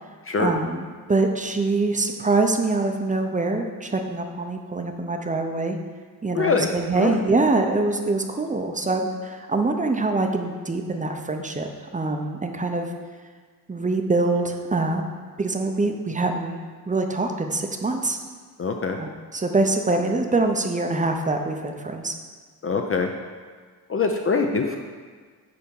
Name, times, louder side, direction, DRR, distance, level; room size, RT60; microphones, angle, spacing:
voice 1, 0.4-5.8 6.2-12.9 13.7-15.0 15.4-18.2 19.0-22.1, right 3 dB, 20° right, 4 dB, 0.6 m, -24 dB
voice 2, 6.3-6.7 6.9-7.2 18.6-19.0 22.6-23.1 23.9-24.8, left 4 dB, 35° left, 3 dB, 0.5 m, -23 dB
10.0 x 3.5 x 6.9 m, 1.6 s
wide cardioid pair, 165°, 39 cm